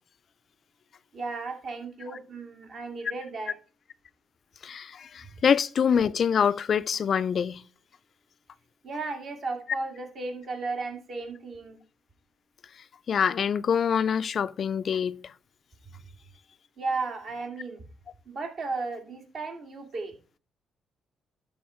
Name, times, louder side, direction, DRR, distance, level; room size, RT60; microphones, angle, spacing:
voice 1, 1.1-3.6 8.8-11.8 15.9-16.0 16.8-17.9 18.3-20.1, right 3 dB, 55° right, 2.5 m, -35 dB
voice 2, 4.6-7.6 13.1-15.2, left 7 dB, 55° left, 0.4 m, -25 dB
12.5 x 4.2 x 4.4 m
cardioid pair, 90°, 0 cm